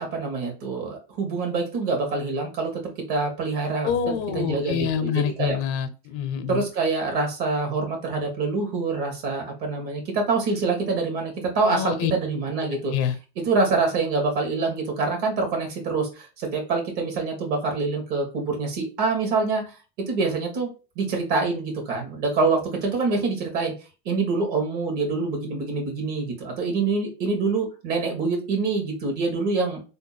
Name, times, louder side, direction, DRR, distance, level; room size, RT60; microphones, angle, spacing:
voice 1, 0.0-2.7 3.1-3.9 4.3-5.6 6.5-12.9 13.4-19.6 20.1-20.7 21.0-23.7 24.1-29.8, right 3 dB, 65° right, 2 dB, 1.8 m, -25 dB
voice 2, 3.8-6.6 11.6-12.1 12.9-13.2, left 8 dB, 65° left, 11 dB, 0.7 m, -26 dB
3.4 x 2.1 x 4.1 m, 0.32 s
supercardioid pair, 110°, 31 cm